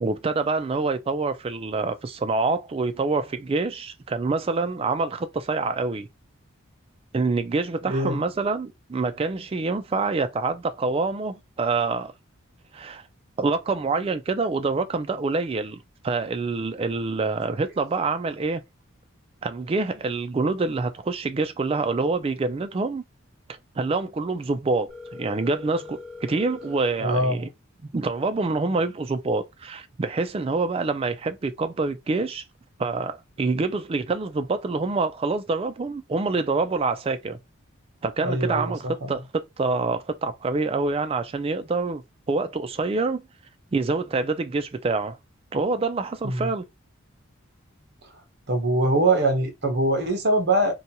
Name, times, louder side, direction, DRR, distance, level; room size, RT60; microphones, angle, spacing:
voice 1, 0.0-6.1 7.1-12.1 12.7-13.0 13.4-18.6 19.4-23.0 23.8-27.5 27.8-32.4 32.8-37.4 38.0-42.0 42.3-43.2 43.7-45.2 45.5-46.6, right 3 dB, 25° right, 0.3 m, -26 dB
voice 2, 7.8-8.2 27.0-27.5 38.2-39.1 46.2-46.5 48.5-50.7, right 2 dB, 50° right, 0.8 m, -23 dB
Telephone, 24.9-26.9, left 3 dB, ahead, 1.1 m, -41 dB
2.7 x 2.2 x 2.7 m
head